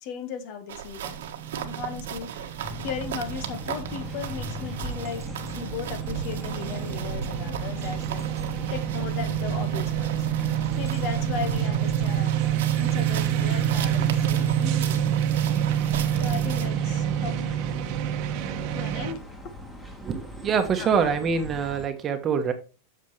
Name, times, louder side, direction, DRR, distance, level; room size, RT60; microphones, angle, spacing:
voice 1, 0.0-1.2 1.5-5.2 5.5-8.3 8.7-10.3 10.8-15.0 16.2-17.5 18.7-19.3 20.8-20.9, left 6 dB, 50° left, 8 dB, 1.8 m, -36 dB
sound 1, 0.7-16.7, right 8 dB, 80° right, 1.6 m, -37 dB
sound 2, 1.1-19.1, right 10 dB, 50° right, 1.3 m, -27 dB
sound 3, 2.6-21.9, left 1 dB, 5° left, 1.9 m, -40 dB
voice 2, 20.0-22.5, right 6 dB, 25° right, 6 dB, 1.4 m, -25 dB
9.5 x 6.6 x 3.4 m, 0.32 s
supercardioid pair, 145°, 0 cm